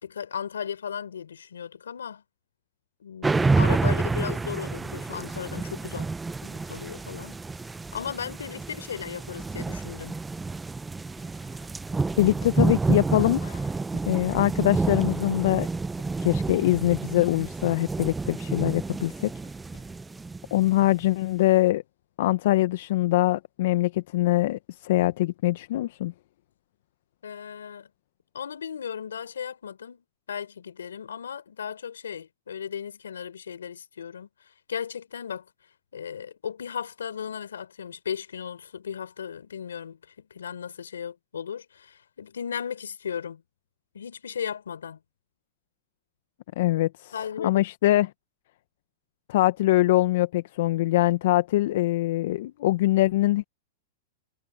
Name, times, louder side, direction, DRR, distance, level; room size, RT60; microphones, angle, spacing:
voice 1, 0.0-2.2 3.0-6.1 6.4-7.4 7.9-10.2 27.2-27.9 28.3-35.5 35.9-43.4 43.9-45.0 47.1-47.6, left 7 dB, 85° left, 4.5 m, -36 dB
sound 1, 3.2-21.0, right 3 dB, 10° right, 0.8 m, -29 dB
voice 2, 12.2-13.7 14.1-15.7 16.2-19.3 20.5-21.8 22.2-26.1 46.6-48.1 49.3-53.4, left 16 dB, 65° left, 1.1 m, -23 dB
hypercardioid pair, 115°, 0 cm